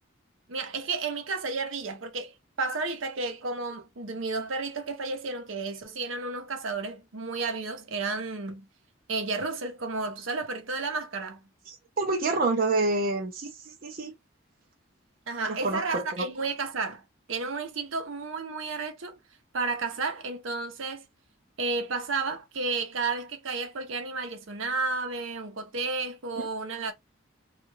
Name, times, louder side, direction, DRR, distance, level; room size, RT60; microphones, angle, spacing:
voice 1, 0.5-8.6 9.1-11.4 15.3-17.0 17.3-19.2 19.5-21.0 21.6-26.9, right 3 dB, 75° right, 0.7 m, -32 dB
voice 2, 11.7-14.1 15.5-16.2 26.4-26.5, right 3 dB, 45° right, 0.5 m, -28 dB
2.4 x 2.2 x 3.1 m
head